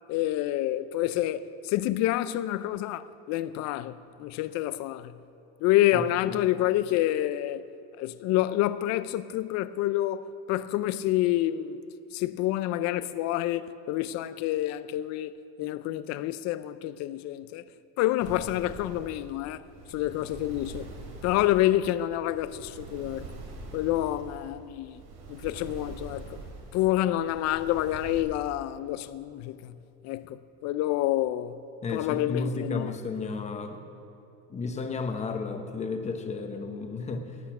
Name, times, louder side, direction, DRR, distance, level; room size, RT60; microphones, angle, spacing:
voice 1, 0.1-5.2 5.6-7.7 8.0-11.8 12.1-15.3 15.6-17.6 18.0-20.9 21.2-23.3 23.7-25.0 25.3-26.4 26.7-29.8 30.0-31.6 31.9-33.0, left 14 dB, 55° left, 0.5 m, -28 dB
voice 2, 5.9-6.4 31.8-33.8 34.5-37.4, left 4 dB, 20° left, 0.9 m, -33 dB
sound 1, 18.2-28.2, right 3 dB, 90° right, 2.8 m, -44 dB
18.0 x 8.1 x 5.9 m
cardioid pair, 155°, 32 cm